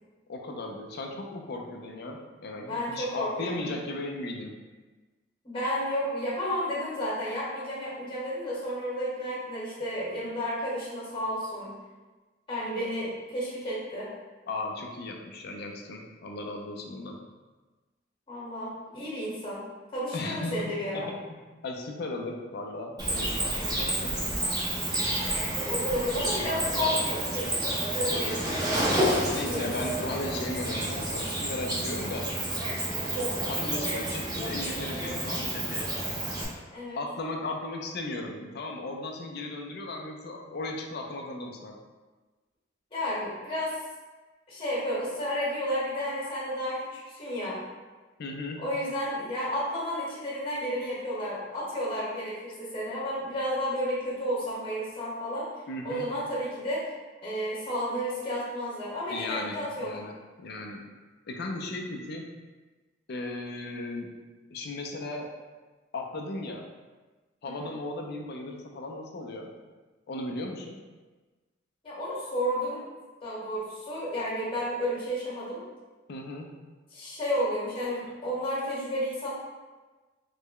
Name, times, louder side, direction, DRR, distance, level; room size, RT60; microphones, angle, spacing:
voice 1, 0.3-4.5 14.5-17.2 20.1-20.5 20.9-21.4 21.6-24.2 29.3-32.3 33.5-35.9 37.0-41.7 48.2-48.6 55.7-56.1 59.1-60.1 60.4-60.8 61.3-62.3 63.1-64.1 64.5-65.3 65.9-66.6 67.4-69.5 70.1-70.8 76.1-76.5, left 2 dB, 55° left, 2 dB, 0.4 m, -36 dB
voice 2, 2.7-3.7 5.4-11.7 12.5-14.1 18.3-19.6 19.9-21.1 25.7-28.5 36.7-37.0 42.9-43.7 44.5-47.6 48.6-55.5 55.8-56.9 57.2-60.0 67.4-67.7 71.8-72.8 73.2-75.6 76.9-79.3, equal, 30° left, -7 dB, 1.1 m, -32 dB
Cricket, 23.0-36.4, right 1 dB, 20° right, 0.6 m, -29 dB
3.2 x 2.1 x 3.6 m, 1.3 s
head